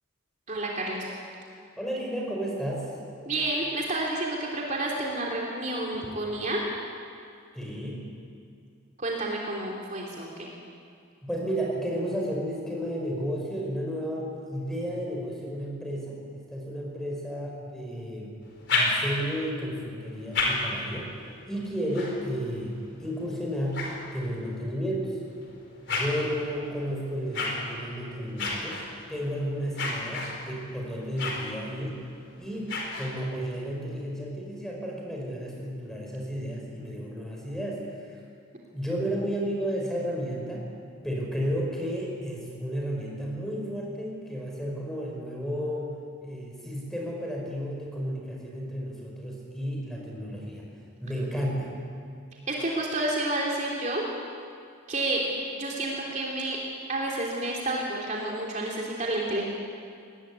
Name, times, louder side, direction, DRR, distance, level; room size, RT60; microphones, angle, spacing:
voice 1, 0.5-1.1 3.2-6.6 9.0-10.5 52.5-54.0 54.9-55.3 55.5-56.6 56.9-59.4, right 2 dB, 35° right, -3 dB, 3.2 m, -30 dB
voice 2, 1.8-2.9 7.5-8.1 11.2-18.3 18.7-21.1 21.5-25.2 25.9-28.8 29.1-32.0 32.4-38.2 38.7-40.7 41.0-45.9 46.2-50.7 51.0-51.7, equal, ahead, -2 dB, 5.3 m, -32 dB
sound 1, 18.4-19.4 20.0-24.6 25.2-33.5, left 2 dB, 55° left, 4.6 m, -34 dB
22.5 x 19.0 x 9.6 m, 2.3 s
head